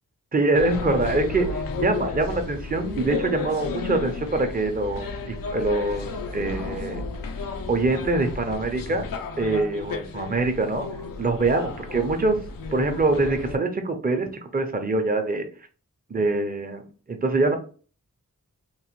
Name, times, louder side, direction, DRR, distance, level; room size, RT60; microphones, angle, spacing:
voice 1, 0.3-7.0 7.7-9.1 9.4-10.8 11.2-12.4 12.7-15.5 16.1-16.8 17.1-17.6, right 2 dB, 25° right, 5 dB, 0.7 m, -24 dB
sound 1, 0.5-13.6, left 4 dB, 85° left, 0.5 m, -33 dB
3.0 x 2.1 x 3.0 m, 0.38 s
cardioid pair, 45°, 33 cm